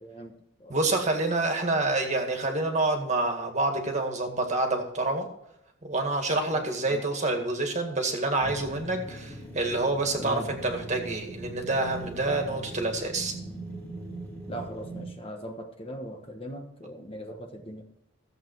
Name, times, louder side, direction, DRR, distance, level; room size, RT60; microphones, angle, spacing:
voice 1, 0.0-0.8 6.5-7.0 10.2-10.5 14.5-17.8, right 1 dB, 25° left, 3 dB, 1.2 m, -40 dB
voice 2, 0.7-5.3 5.8-13.3, right 2 dB, 30° right, 3 dB, 2.0 m, -27 dB
sound 1, 8.4-15.2, right 1 dB, 5° left, 2.9 m, -40 dB
15.0 x 8.0 x 4.7 m, 0.85 s
head